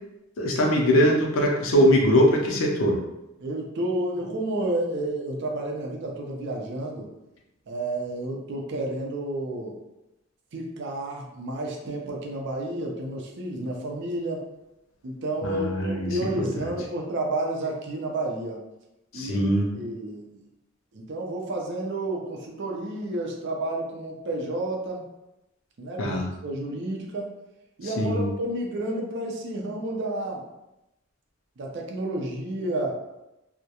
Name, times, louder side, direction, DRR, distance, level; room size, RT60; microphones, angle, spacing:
voice 1, 0.4-3.0 15.4-16.2 19.1-19.7 26.0-26.3 28.0-28.3, equal, 75° left, 0 dB, 0.5 m, -21 dB
voice 2, 3.4-7.1 7.7-9.8 10.5-14.4 15.0-18.6 19.1-20.4 20.9-25.1 25.8-27.3 27.8-30.4 31.6-33.0, right 1 dB, 60° right, 0 dB, 0.5 m, -31 dB
2.3 x 2.1 x 2.8 m, 0.93 s
head